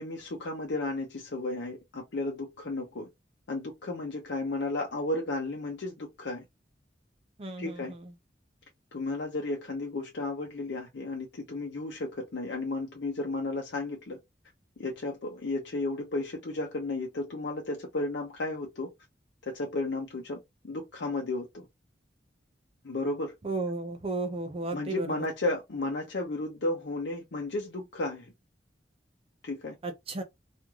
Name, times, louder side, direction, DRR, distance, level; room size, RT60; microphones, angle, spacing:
voice 1, 0.0-3.1 3.5-6.4 7.6-7.9 8.9-14.2 14.8-18.9 19.5-21.6 22.8-23.3 24.7-28.3 29.4-29.8, left 2 dB, 80° left, 0.6 m, -33 dB
voice 2, 7.4-7.8 23.4-25.3 29.8-30.2, right 3 dB, 35° right, 0.5 m, -34 dB
3.0 x 2.5 x 2.3 m
head